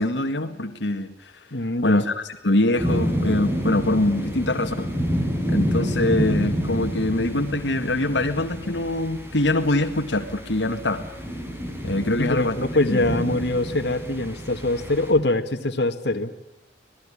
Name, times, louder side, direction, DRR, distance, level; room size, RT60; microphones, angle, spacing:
voice 1, 0.0-1.5 1.8-4.9 5.5-11.1 11.8-12.6 12.9-13.0, left 2 dB, 85° left, 6 dB, 1.9 m, -24 dB
voice 2, 1.5-2.0 12.2-16.3, left 2 dB, 70° left, 5 dB, 2.0 m, -23 dB
sound 1, 2.8-15.1, equal, 15° right, 4.4 m, -29 dB
26.5 x 19.0 x 10.0 m, 0.84 s
head